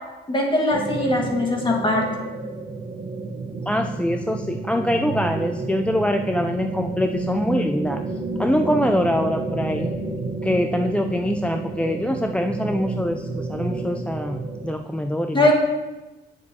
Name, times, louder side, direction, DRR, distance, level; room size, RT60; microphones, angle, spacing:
voice 1, 0.3-2.1 15.3-15.5, left 2 dB, 25° left, 0 dB, 1.8 m, -20 dB
sound 1, 0.7-14.7, right 3 dB, 45° right, 1.2 m, -30 dB
voice 2, 3.7-8.0 8.4-10.0 10.4-15.5, left 1 dB, 5° left, 4 dB, 0.4 m, -24 dB
9.5 x 6.8 x 2.8 m, 1.1 s
cardioid pair, 90°, 20 cm